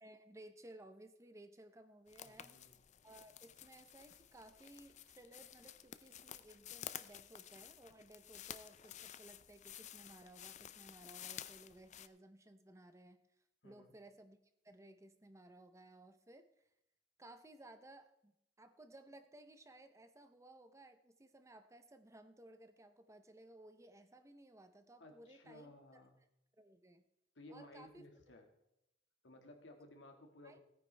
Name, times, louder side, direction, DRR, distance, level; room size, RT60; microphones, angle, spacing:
voice 1, 0.0-2.6 3.0-13.2 13.6-14.4 14.6-16.5 17.2-18.3 18.6-26.0 26.6-27.0 27.5-28.1 30.4-30.6, right 1 dB, 15° right, 9 dB, 0.7 m, -59 dB
sound 1, 2.1-12.1, left 10 dB, 40° left, 0.4 m, -52 dB
voice 2, 2.2-2.8 13.6-13.9 25.0-26.2 27.4-28.5 29.2-30.6, left 1 dB, 80° left, 4 dB, 1.9 m, -58 dB
16.5 x 9.5 x 3.4 m, 0.82 s
head